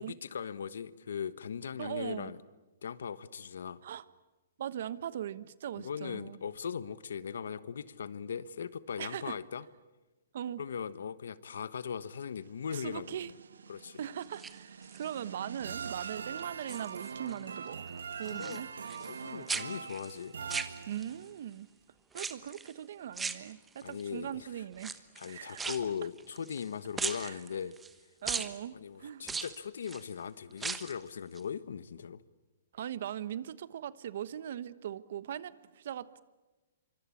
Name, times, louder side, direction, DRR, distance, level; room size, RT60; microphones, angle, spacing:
voice 1, 0.0-2.4 2.8-3.8 5.8-9.6 10.6-13.3 13.7-14.0 18.3-18.6 19.0-20.4 23.8-24.5 24.8-27.7 28.4-32.2, left 7 dB, 80° left, 1.2 m, -39 dB
voice 2, 1.8-2.3 3.8-4.0 4.6-6.4 9.0-9.4 10.3-10.6 12.7-13.3 14.0-17.8 18.2-18.7 20.8-21.7 22.1-24.9 25.3-25.7 27.2-27.4 28.2-28.7 29.0-29.2 32.7-36.2, right 10 dB, 60° right, 1.2 m, -40 dB
sound 1, 12.4-21.4, right 6 dB, 90° right, 1.3 m, -43 dB
sound 2, 14.2-15.2 15.7-16.1 16.4-17.4 17.7-19.2 19.5-21.3 22.1-22.7 23.1-24.0 24.7-26.7 27.0-27.9 28.3-28.5 29.2-30.0 30.5-31.0 31.3-31.4, right 5 dB, 10° right, 1.2 m, -39 dB
26.0 x 24.5 x 8.5 m
hypercardioid pair, 145°, 0 cm